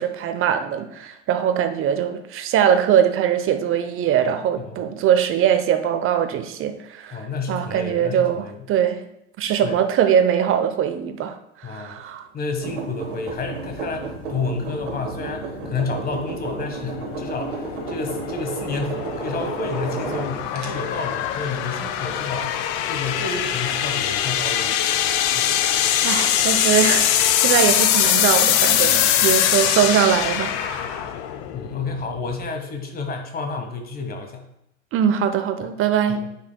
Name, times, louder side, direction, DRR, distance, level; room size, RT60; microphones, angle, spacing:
voice 1, 0.0-9.0 9.4-11.3 11.6-12.2 26.0-31.1 34.9-36.2, right 9 dB, 35° right, 8 dB, 0.8 m, -21 dB
voice 2, 7.1-8.5 9.6-9.8 11.6-12.0 12.3-24.8 25.3-25.6 28.9-29.3 31.5-34.4 35.6-35.7 36.2-36.3, left 3 dB, 25° left, 4 dB, 1.4 m, -30 dB
sound 1, 12.6-20.7, right 5 dB, 80° right, 1.3 m, -32 dB
sound 2, 13.3-32.4, left 10 dB, 50° left, 0.7 m, -23 dB
9.4 x 5.6 x 2.2 m, 0.82 s
figure-of-eight pair, 80°, 36 cm